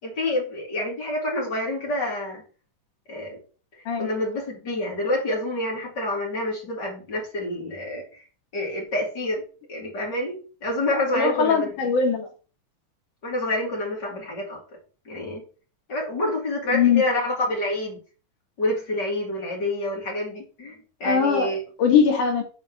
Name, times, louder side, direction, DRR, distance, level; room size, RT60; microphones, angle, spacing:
voice 1, 0.0-2.4 3.1-3.4 4.0-8.2 8.5-9.4 9.7-11.7 13.2-14.6 15.0-15.4 15.9-18.0 18.6-21.6, left 1 dB, 35° left, 3.1 m, -27 dB
voice 2, 11.1-12.3 16.7-17.0 21.0-21.5 21.8-22.4, left 6 dB, 70° left, 3.4 m, -20 dB
7.4 x 4.2 x 6.2 m
omnidirectional pair, 3.8 m